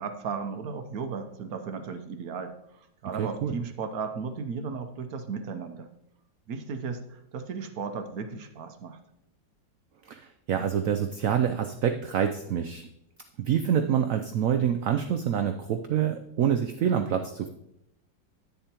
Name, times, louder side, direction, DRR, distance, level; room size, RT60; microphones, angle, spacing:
voice 1, 0.0-5.9 6.5-9.0, right 5 dB, 60° right, 7 dB, 1.1 m, -35 dB
voice 2, 3.2-3.5 10.1-12.9 13.4-17.5, right 8 dB, 85° right, 7 dB, 0.7 m, -26 dB
10.5 x 9.0 x 2.9 m, 0.79 s
omnidirectional pair, 2.0 m